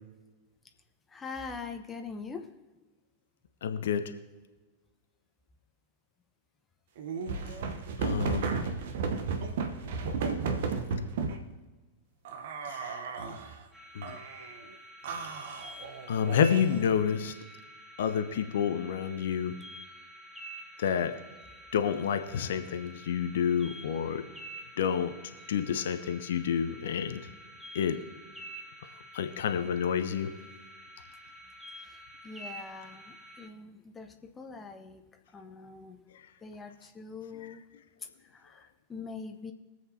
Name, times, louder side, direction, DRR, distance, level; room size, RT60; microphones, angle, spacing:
voice 1, 1.1-2.5 32.2-35.0 35.3-36.0 36.4-37.6 38.2-39.5, left 4 dB, 15° left, 5 dB, 1.0 m, -43 dB
voice 2, 3.6-4.0 8.0-8.6 12.7-13.1 13.9-14.2 16.1-17.3 18.0-19.5 20.8-21.1 21.7-24.2 24.8-25.1 25.5-27.2 27.7-28.0 29.1-30.3 36.1-36.2 37.4-37.5, left 8 dB, 60° left, 8 dB, 0.8 m, -29 dB
sound 1, 7.0-11.4 12.3-13.6 14.0-14.6 15.0-16.9, right 4 dB, 55° right, 1.0 m, -34 dB
sound 2, 13.7-33.5, right 1 dB, 5° right, 2.0 m, -49 dB
23.5 x 7.8 x 2.8 m, 1.2 s
figure-of-eight pair, 90°, 0 cm